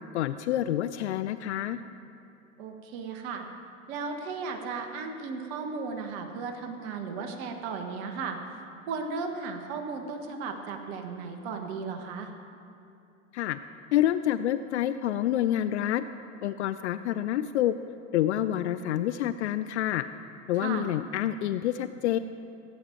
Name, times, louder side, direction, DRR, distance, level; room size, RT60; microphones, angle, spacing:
voice 1, 0.1-1.8 13.3-13.6 13.9-16.0 16.4-17.7 18.1-20.0 20.5-22.2, left 12 dB, 65° left, 12 dB, 0.5 m, -27 dB
voice 2, 2.6-3.5 3.9-12.3 20.5-20.9, right 4 dB, 50° right, 4 dB, 1.4 m, -35 dB
15.5 x 8.5 x 4.5 m, 2.7 s
figure-of-eight pair, 85°, 38 cm